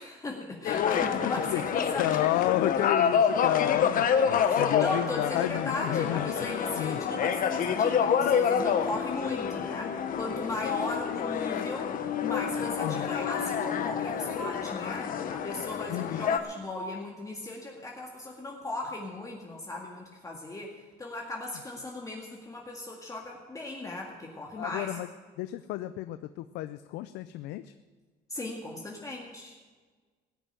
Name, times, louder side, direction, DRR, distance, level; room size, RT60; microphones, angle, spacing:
voice 1, 0.0-2.1 4.3-12.0 12.2-25.0 28.3-29.6, left 2 dB, 20° left, -1 dB, 1.9 m, -37 dB
sound 1, 0.7-16.4, left 7 dB, 55° left, 1.2 m, -28 dB
voice 2, 1.9-6.5 6.8-7.0 12.8-13.1 15.9-16.3 24.6-25.1 25.4-27.7, left 15 dB, 90° left, 12 dB, 0.5 m, -31 dB
18.0 x 7.0 x 9.0 m, 1.4 s
cardioid pair, 110°, 17 cm